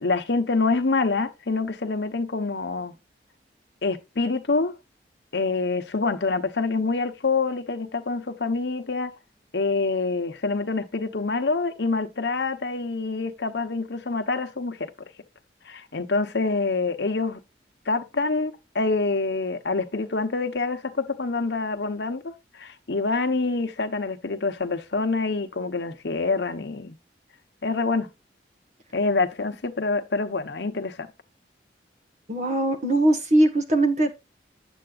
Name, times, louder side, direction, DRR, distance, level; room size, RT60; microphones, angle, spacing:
voice 1, 0.0-2.9 3.8-4.7 5.3-9.1 9.5-14.9 15.7-17.4 17.9-27.0 27.6-28.1 28.9-31.1, left 3 dB, 80° left, 1.0 m, -26 dB
voice 2, 32.3-34.1, right 1 dB, 40° right, 1.4 m, -21 dB
8.2 x 7.8 x 2.4 m
head